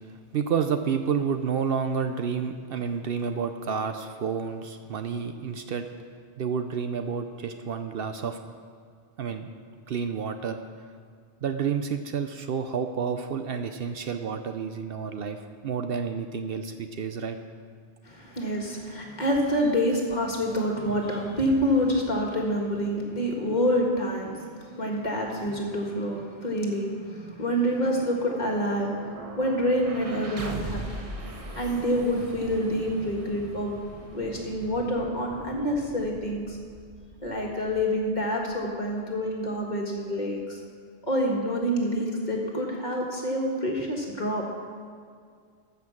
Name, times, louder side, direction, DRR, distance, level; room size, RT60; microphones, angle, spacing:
voice 1, 0.3-5.9 6.4-8.4 9.2-9.5 9.9-10.6 11.4-17.4, right 6 dB, 65° right, 7 dB, 0.8 m, -30 dB
voice 2, 18.0-31.0 31.6-33.8 34.1-36.6 37.2-40.6 41.0-44.5, equal, 40° left, -1 dB, 1.8 m, -27 dB
sound 1, 27.6-39.5, right 2 dB, 35° right, 1.1 m, -41 dB
13.5 x 5.8 x 7.2 m, 2.1 s
omnidirectional pair, 1.1 m